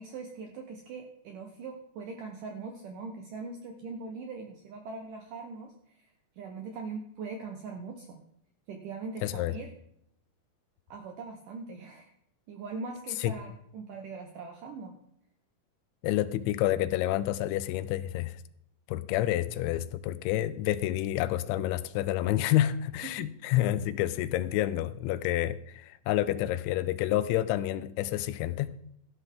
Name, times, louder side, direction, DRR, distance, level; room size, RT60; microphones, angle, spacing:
voice 1, 0.0-5.7 6.4-8.2 8.7-9.7 10.9-12.1 12.5-14.9 22.5-22.6 23.0-23.3, right 4 dB, 75° right, 4 dB, 1.9 m, -41 dB
voice 2, 9.2-9.5 13.2-13.3 16.0-18.4 18.9-28.7, left 13 dB, 90° left, 15 dB, 3.0 m, -29 dB
13.5 x 11.5 x 3.6 m, 0.73 s
omnidirectional pair, 5.2 m